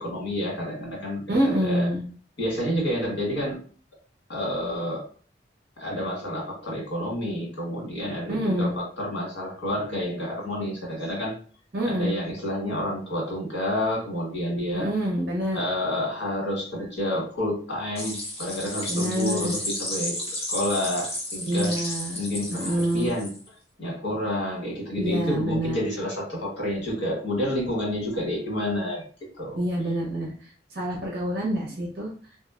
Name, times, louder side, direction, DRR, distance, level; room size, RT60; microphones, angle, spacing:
voice 1, 0.0-1.9 2.4-3.6 4.3-5.0 5.8-11.3 11.8-14.9 15.5-20.1 20.5-21.7 22.1-23.3 23.8-29.0 29.4-29.6, left 1 dB, 85° left, -2 dB, 1.4 m, -29 dB
voice 2, 1.3-2.0 8.3-8.7 11.7-12.1 14.7-15.7 18.9-19.5 21.5-22.2 22.5-23.2 24.9-25.8 29.5-32.1, equal, 55° right, -2 dB, 0.7 m, -26 dB
sound 1, 18.0-23.5, left 1 dB, 30° left, 0.9 m, -33 dB
3.1 x 2.5 x 2.4 m, 0.42 s
head